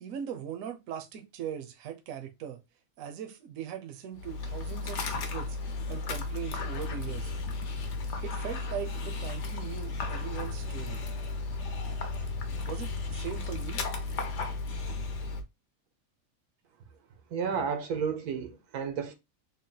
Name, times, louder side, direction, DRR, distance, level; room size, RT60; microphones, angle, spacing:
voice 1, 0.0-2.6 3.0-7.3 8.2-11.0 12.7-13.8, right 9 dB, 70° right, 1.0 m, -40 dB
Dog, 4.1-15.4, left 3 dB, 60° left, 0.9 m, -34 dB
voice 2, 17.3-19.1, right 6 dB, 85° right, 1.3 m, -32 dB
3.7 x 2.2 x 3.8 m
omnidirectional pair, 1.6 m